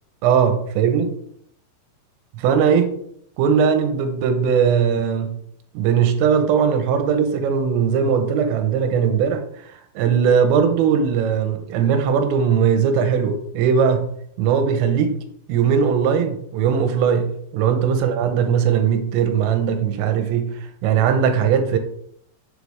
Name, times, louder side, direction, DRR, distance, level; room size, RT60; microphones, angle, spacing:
voice 1, 0.2-1.1 2.4-3.0 3.4-5.4 5.8-14.1 14.4-15.2 15.5-20.5 20.8-21.8, right 7 dB, 90° right, 3.5 m, -19 dB
8.2 x 7.7 x 3.5 m
omnidirectional pair, 5.8 m